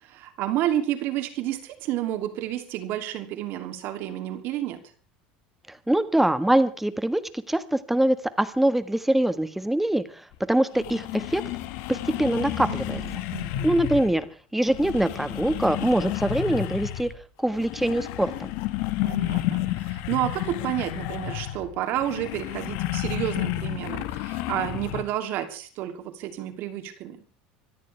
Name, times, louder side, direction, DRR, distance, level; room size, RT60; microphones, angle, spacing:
voice 1, 0.0-4.8 12.6-13.7 19.0-27.2, right 12 dB, 60° right, 7 dB, 2.9 m, -30 dB
voice 2, 5.9-7.2 7.5-10.2 10.5-11.4 11.9-13.0 13.6-14.3 14.5-17.1 17.4-18.5, right 1 dB, 5° right, 12 dB, 1.6 m, -23 dB
sound 1, 10.3-10.4 10.7-14.2 14.6-17.2 17.5-25.0, left 15 dB, 70° left, 1.6 m, -31 dB
25.5 x 14.0 x 3.4 m, 0.39 s
hypercardioid pair, 90°, 4 cm